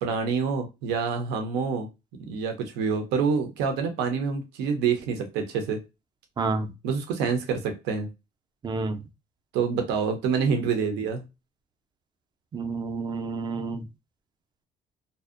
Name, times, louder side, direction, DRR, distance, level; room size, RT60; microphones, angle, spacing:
voice 1, 0.0-1.9 2.3-5.8 6.8-8.1 9.5-11.2, right 5 dB, 90° right, 5 dB, 0.5 m, -27 dB
voice 2, 6.4-6.7 8.6-9.0 12.5-13.8, right 3 dB, 25° right, 9 dB, 0.4 m, -29 dB
2.6 x 2.0 x 2.4 m, 0.25 s
cardioid pair, 110°, 17 cm